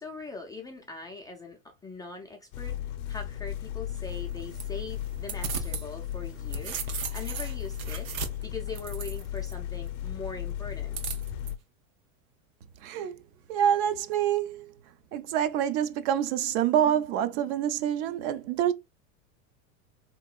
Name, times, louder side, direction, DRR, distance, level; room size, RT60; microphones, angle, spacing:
voice 1, 0.0-8.1 8.4-11.0, left 3 dB, 10° left, 0.4 m, -41 dB
sound 1, 2.5-11.6, left 11 dB, 65° left, 0.6 m, -35 dB
sound 2, 4.1-5.9 6.2-9.5 10.9-11.5, right 6 dB, 75° right, 1.1 m, -37 dB
voice 2, 12.8-13.2 13.5-14.7 15.1-18.7, right 10 dB, 55° right, 0.6 m, -26 dB
3.5 x 3.0 x 2.3 m
supercardioid pair, 115°, 42 cm